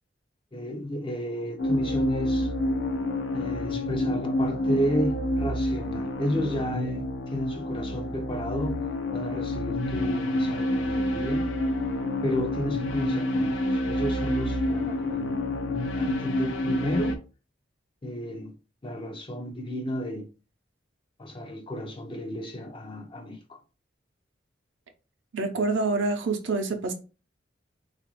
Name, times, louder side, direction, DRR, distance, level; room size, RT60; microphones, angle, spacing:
voice 1, 0.5-2.5 3.3-8.8 9.1-11.5 12.2-17.2 18.0-18.5 18.8-20.3 21.2-23.6, equal, 25° left, 0.5 m, -32 dB
sound 1, 1.6-17.2, left 1 dB, 85° left, 0.6 m, -28 dB
voice 2, 25.3-26.9, right 3 dB, 70° right, 0.6 m, -26 dB
3.8 x 2.5 x 2.9 m
head